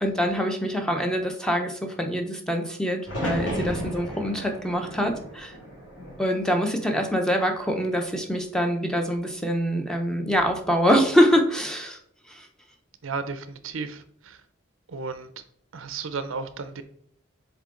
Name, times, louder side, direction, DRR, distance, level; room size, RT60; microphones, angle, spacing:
voice 1, 0.0-5.6 6.2-12.0 12.3-12.5, equal, 5° left, 4 dB, 0.7 m, -24 dB
sound 1, 3.0-7.1 7.4-8.2 10.1-10.6, equal, 65° left, 2.7 m, -34 dB
voice 2, 13.0-14.4 14.9-15.3 15.7-16.8, right 4 dB, 75° right, 11 dB, 0.6 m, -34 dB
7.0 x 3.7 x 3.8 m, 0.63 s
head